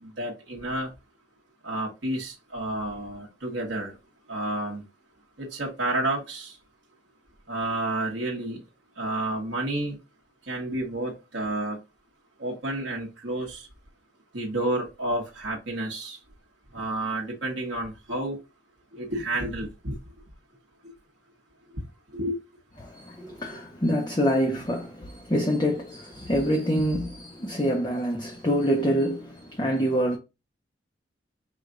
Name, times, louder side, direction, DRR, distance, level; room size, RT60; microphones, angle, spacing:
voice 1, 0.0-0.9 1.6-3.9 4.3-4.8 5.4-6.5 7.5-8.6 9.0-10.0 10.5-11.8 12.4-13.7 14.3-16.2 16.7-18.4 18.9-19.9 21.7-21.8 22.1-22.4, right 1 dB, 80° right, 1.2 m, -30 dB
voice 2, 22.8-30.2, equal, 25° left, 0.7 m, -26 dB
5.0 x 2.4 x 3.7 m
head